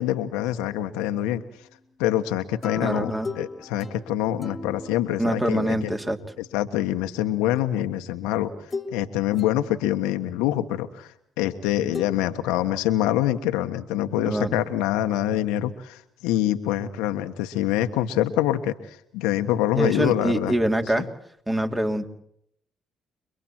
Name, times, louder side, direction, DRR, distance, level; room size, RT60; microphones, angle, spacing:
voice 1, 0.0-1.4 2.0-5.9 6.4-8.5 8.9-20.5 21.0-21.1, left 12 dB, 85° left, 7 dB, 1.4 m, -25 dB
sound 1, 2.6-6.2 7.6-7.7 8.7-9.0 9.3-10.2 11.9-12.1, left 3 dB, 30° left, 2.2 m, -38 dB
voice 2, 2.8-3.3 5.2-6.2 14.2-14.6 19.7-21.1 21.5-22.1, right 1 dB, 15° right, 5 dB, 3.2 m, -24 dB
30.0 x 23.0 x 4.5 m, 0.69 s
hypercardioid pair, 55°, 0 cm